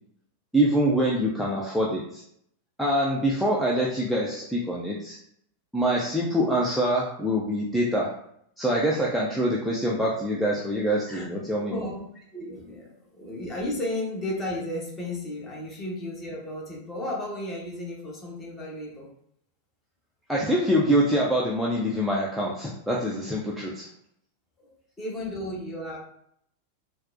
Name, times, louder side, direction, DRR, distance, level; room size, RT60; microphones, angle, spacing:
voice 1, 0.5-2.2 2.8-5.2 5.7-8.2 8.6-11.9 20.3-23.9, equal, ahead, -4 dB, 0.5 m, -25 dB
voice 2, 11.6-12.0 12.3-19.1 24.6-26.0, left 1 dB, 20° left, -3 dB, 1.1 m, -34 dB
4.1 x 2.0 x 2.6 m, 0.69 s
figure-of-eight pair, 90°, 0 cm